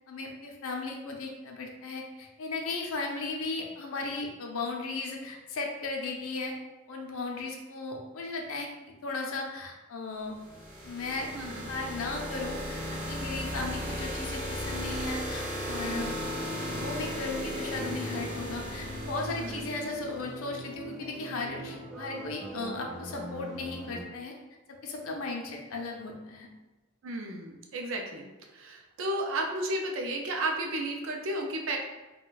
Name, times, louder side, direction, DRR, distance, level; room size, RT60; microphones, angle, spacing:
voice 1, 0.1-6.5 6.9-10.4 10.8-11.3 11.7-16.1 16.7-24.3 24.8-26.5, left 3 dB, 85° left, 1 dB, 0.5 m, -36 dB
sound 1, 10.3-20.2, equal, 40° right, 1.0 m, -36 dB
voice 2, 11.3-11.7 15.8-16.1 19.3-19.7 27.0-28.3 28.5-31.8, right 1 dB, 65° right, 2 dB, 0.4 m, -33 dB
sound 2, 16.1-24.0, right 1 dB, 5° right, 0.5 m, -41 dB
2.3 x 2.2 x 3.8 m, 1.1 s
head